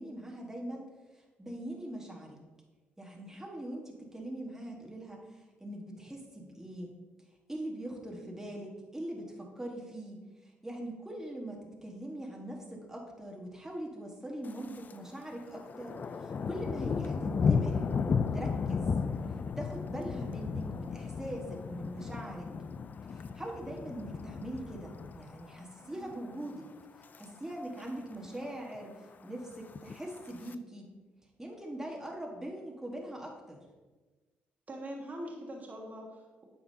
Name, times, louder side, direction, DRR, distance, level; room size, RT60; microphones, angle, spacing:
voice 1, 0.0-2.4 3.0-6.9 7.5-17.9 18.3-18.9 19.6-22.5 23.1-26.7 27.2-30.9 31.4-33.6, right 1 dB, 10° right, -1 dB, 1.3 m, -42 dB
Thunder, 14.4-15.0 15.3-25.6 26.0-26.4 26.8-27.2 27.5-27.6 27.8-27.9 28.3-28.8 29.6-30.5, left 5 dB, 40° left, 0.3 m, -34 dB
voice 2, 25.8-26.1 34.7-36.4, right 1 dB, 40° right, -1 dB, 1.4 m, -43 dB
8.6 x 4.9 x 2.7 m, 1.3 s
supercardioid pair, 70°, 4 cm